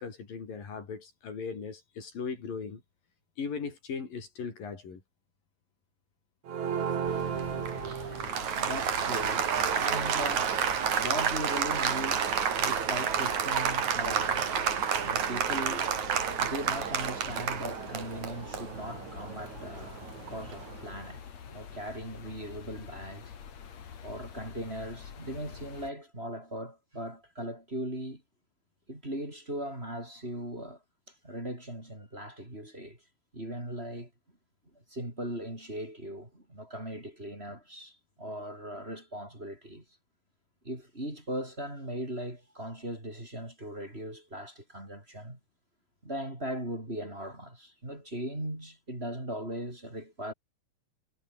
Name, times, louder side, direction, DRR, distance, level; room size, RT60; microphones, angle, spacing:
voice 1, 0.0-2.8 3.4-5.0, left 5 dB, 75° left, 6.3 m, -38 dB
Applause, 6.5-20.8, right 7 dB, 55° right, 3.8 m, -30 dB
sound 1, 7.0-25.9, left 7 dB, 50° left, 3.5 m, -46 dB
voice 2, 7.9-21.2 21.5-23.3 24.0-28.2 28.9-30.8 31.1-33.0 33.3-34.1 34.7-39.8 40.6-45.4 46.0-50.3, right 1 dB, 15° right, 6.5 m, -39 dB
omnidirectional pair, 4.1 m